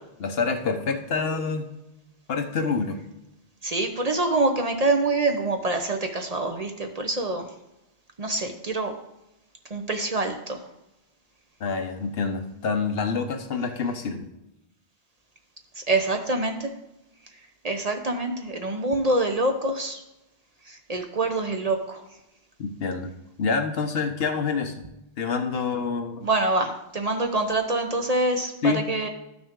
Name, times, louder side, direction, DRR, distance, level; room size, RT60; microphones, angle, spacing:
voice 1, 0.2-1.7 2.3-3.0 11.6-14.3 22.6-23.1 23.4-24.7 25.2-26.3 28.6-28.8, left 4 dB, 65° left, 6 dB, 1.0 m, -27 dB
voice 2, 3.6-7.5 8.2-9.0 9.7-10.6 15.8-16.7 17.6-20.0 20.7-22.1 26.2-29.1, right 2 dB, 40° right, 5 dB, 0.7 m, -25 dB
12.0 x 6.2 x 3.6 m, 0.93 s
omnidirectional pair, 1.1 m